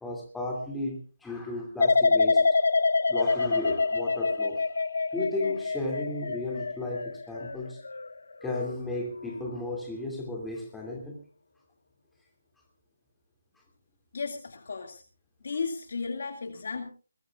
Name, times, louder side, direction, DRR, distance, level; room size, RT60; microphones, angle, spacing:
voice 1, 0.0-2.5 3.1-4.6 5.1-7.8 8.4-11.2, left 2 dB, 5° left, -1 dB, 2.6 m, -34 dB
sound 1, 1.8-8.7 9.1-9.6, left 3 dB, 75° left, 1.0 m, -26 dB
voice 2, 14.1-15.0 15.4-16.9, left 4 dB, 55° left, 5 dB, 2.1 m, -34 dB
21.5 x 19.5 x 2.4 m, 0.36 s
hypercardioid pair, 170°, 0 cm